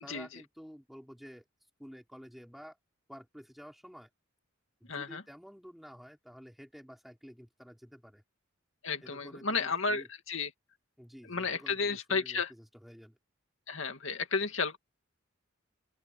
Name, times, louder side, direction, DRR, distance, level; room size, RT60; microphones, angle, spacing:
voice 1, 0.0-1.4 1.8-2.8 3.1-4.1 4.8-8.2 9.0-10.1 11.0-13.2, equal, ahead, 4.7 m, -51 dB
voice 2, 4.9-5.2 8.8-10.5 11.3-12.5 13.7-14.8, left 4 dB, 70° left, 2.3 m, -32 dB
open air
head